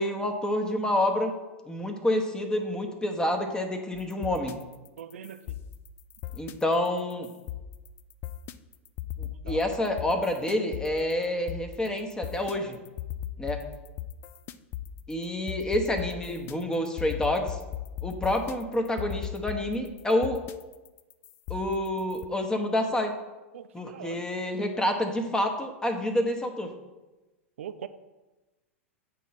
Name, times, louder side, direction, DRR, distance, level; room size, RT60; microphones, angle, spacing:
voice 1, 0.0-1.4 1.6-4.6 6.3-7.3 9.2-12.8 13.4-13.6 15.1-17.6 18.0-20.4 21.5-23.1 23.7-26.7, left 1 dB, 10° left, 5 dB, 0.9 m, -28 dB
sound 1, 3.9-22.3, left 11 dB, 30° left, 0.3 m, -39 dB
voice 2, 5.0-5.6 9.4-9.7 23.5-24.4 27.6-27.9, right 9 dB, 65° right, 11 dB, 0.4 m, -41 dB
8.3 x 3.1 x 5.6 m, 1.1 s
figure-of-eight pair, 90°, 7 cm